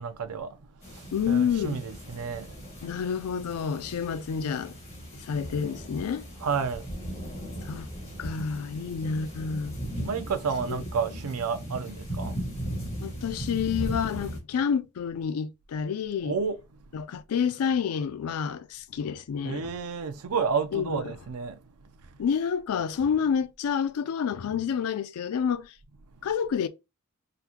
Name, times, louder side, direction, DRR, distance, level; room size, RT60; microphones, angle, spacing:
voice 1, 0.0-2.8 6.4-7.6 10.0-12.7 13.0-13.1 16.2-16.6 19.4-22.1, right 5 dB, 90° right, 0.5 m, -32 dB
sound 1, 0.8-14.4, right 1 dB, 30° left, 1.5 m, -38 dB
voice 2, 1.1-1.8 2.8-4.8 5.1-6.2 7.7-7.9 8.2-9.8 10.7-10.8 13.0-16.4 16.9-19.7 20.7-21.0 22.2-25.7 26.2-26.7, left 7 dB, 80° left, 0.4 m, -29 dB
3.8 x 2.1 x 2.8 m
head